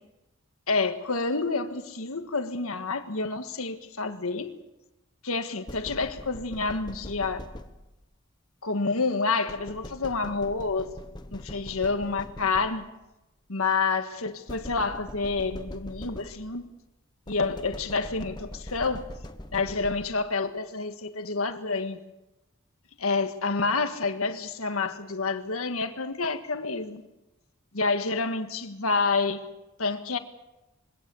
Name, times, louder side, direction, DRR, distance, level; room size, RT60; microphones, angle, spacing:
voice 1, 0.7-4.6 5.2-7.4 8.6-10.9 11.3-12.9 13.5-16.7 17.3-19.1 19.5-22.0 23.0-27.0 27.7-29.5 29.8-30.2, left 4 dB, 80° left, 1.6 m, -28 dB
sound 1, 5.7-8.1 9.5-13.1 14.5-16.7 17.3-20.3, left 1 dB, 20° left, 1.1 m, -42 dB
23.0 x 17.5 x 7.0 m
head